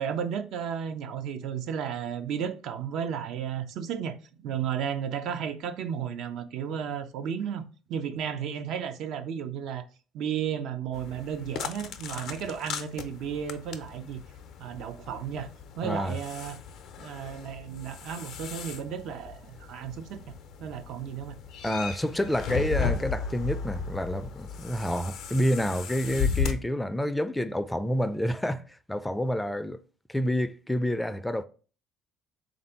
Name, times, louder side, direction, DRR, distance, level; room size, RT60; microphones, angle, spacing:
voice 1, 0.0-4.2 4.4-7.6 7.9-9.8 10.1-14.2 14.6-15.5 15.7-16.6 17.0-20.2 20.6-21.4, right 8 dB, 65° right, 0.4 m, -33 dB
sound 1, 10.9-26.5, left 6 dB, 65° left, 0.5 m, -36 dB
voice 2, 15.8-16.1 21.6-29.8 30.1-31.4, equal, 10° left, 0.4 m, -28 dB
3.4 x 2.6 x 4.3 m
hypercardioid pair, 70°, 0 cm